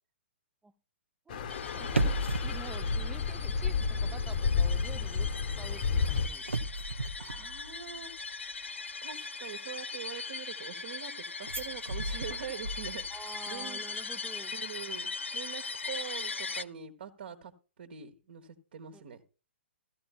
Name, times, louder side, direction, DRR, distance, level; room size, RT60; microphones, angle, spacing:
sound 1, 1.3-6.3, left 5 dB, 50° left, 1.1 m, -31 dB
sound 2, 1.5-16.6, left 4 dB, 85° left, 0.6 m, -40 dB
voice 1, 1.7-5.3 5.6-6.5 13.1-14.5 18.9-19.0, right 4 dB, 10° right, 14 dB, 0.6 m, -48 dB
sound 3, 1.8-4.1 4.4-4.7 6.0-8.2 11.4-13.3 13.6-13.7, right 1 dB, 90° right, 0.9 m, -35 dB
voice 2, 7.2-8.1 9.0-13.9 14.5-17.5 17.8-19.2, right 8 dB, 55° right, 6 dB, 1.5 m, -44 dB
14.5 x 13.0 x 2.4 m, 0.34 s
figure-of-eight pair, 120°, 6 cm